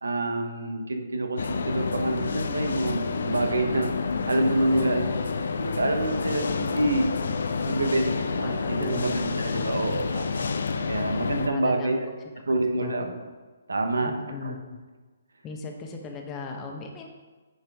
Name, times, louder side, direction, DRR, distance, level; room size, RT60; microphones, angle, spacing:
voice 1, 0.0-3.9 4.3-5.2 5.6-7.1 7.6-10.4 10.9-12.1 12.5-13.1 13.7-14.1 14.4-14.5, right 2 dB, 85° right, 5 dB, 0.9 m, -27 dB
sound 1, 1.4-11.5, left 4 dB, 70° left, 0.5 m, -29 dB
voice 2, 4.7-5.4 8.4-9.2 9.5-10.1 11.5-12.0 12.4-12.5 12.8-13.0 14.0-14.8 15.4-17.1, left 4 dB, 20° left, 2 dB, 0.8 m, -38 dB
8.9 x 4.2 x 3.5 m, 1.3 s
hypercardioid pair, 145°, 0 cm